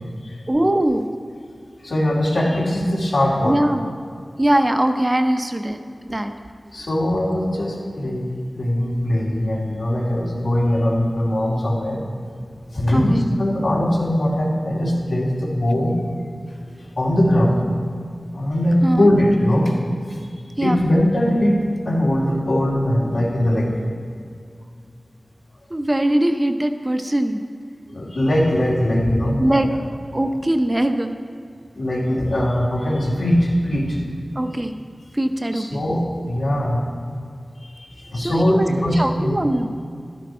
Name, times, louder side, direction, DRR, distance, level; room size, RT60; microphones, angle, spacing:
voice 1, 0.5-1.1 3.4-3.9 4.4-6.3 12.9-13.3 18.8-19.1 20.6-20.8 25.7-27.4 29.4-29.7 30.1-31.1 34.3-34.8 35.1-35.8 38.1-39.7, right 1 dB, 25° right, 6 dB, 0.7 m, -21 dB
voice 2, 1.8-3.6 6.7-12.0 12.7-16.0 17.0-17.7 18.3-19.7 20.1-21.6 21.9-23.7 27.9-29.8 31.7-34.0 35.5-36.8 37.8-39.3, left 1 dB, 80° left, -5 dB, 2.6 m, -20 dB
12.0 x 10.5 x 4.4 m, 2.2 s
wide cardioid pair, 75°, 0 cm